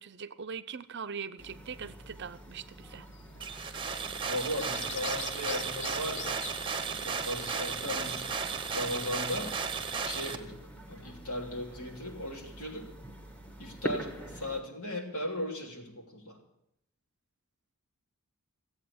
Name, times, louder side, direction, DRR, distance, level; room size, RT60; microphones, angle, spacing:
voice 1, 0.0-3.1, right 6 dB, 50° right, 16 dB, 0.6 m, -41 dB
sound 1, 1.4-14.6, equal, 5° left, 1.4 m, -46 dB
sound 2, 2.9-3.2 3.5-3.6 4.4-6.6, left 9 dB, 55° left, 0.6 m, -43 dB
sound 3, 3.4-10.4, right 5 dB, 20° right, 0.9 m, -34 dB
voice 2, 4.2-6.4 6.8-8.3 8.7-9.6 10.0-10.6 10.9-12.9 13.6-16.4, left 1 dB, 75° left, 1 dB, 3.0 m, -37 dB
14.5 x 8.4 x 8.5 m, 0.81 s
head